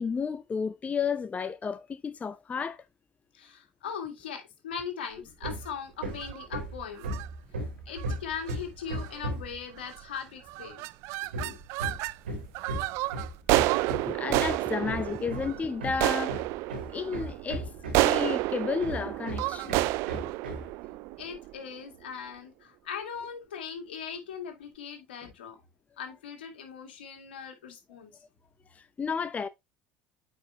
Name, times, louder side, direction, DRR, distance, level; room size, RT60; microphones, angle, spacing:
voice 1, 0.0-2.8 14.0-16.4 16.9-17.7 18.0-19.8 28.7-29.5, left 5 dB, 25° left, 0.6 m, -32 dB
voice 2, 3.3-7.1 7.9-10.9 11.3-11.6 13.8-13.9 20.6-20.7 21.2-25.6 26.0-28.1, left 7 dB, 80° left, 2.0 m, -40 dB
Hammer, 5.4-5.7 6.0-9.6 11.3-18.3 18.8-20.7, right 1 dB, 85° right, 3.0 m, -36 dB
sound 1, 6.1-6.5 7.0-7.3 8.0-8.2 8.5-8.6 8.9-9.3 9.9-10.2 10.5-12.2 12.6-21.7, right 20 dB, 65° right, 0.4 m, -30 dB
8.9 x 5.0 x 2.9 m
hypercardioid pair, 70°, 5 cm